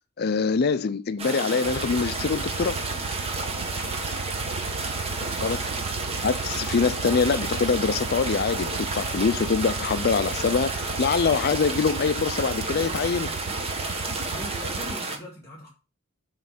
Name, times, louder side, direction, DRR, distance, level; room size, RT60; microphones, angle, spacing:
voice 1, 0.2-2.8 5.2-5.6 6.2-13.3, left 5 dB, 45° left, 0.4 m, -24 dB
sound 1, 1.2-15.2, right 3 dB, 30° right, 1.1 m, -31 dB
sound 2, 1.6-15.0, right 5 dB, 75° right, 0.5 m, -36 dB
voice 2, 4.3-4.7 5.4-5.6 14.2-15.7, left 1 dB, 15° left, 2.2 m, -42 dB
7.3 x 3.2 x 5.9 m
head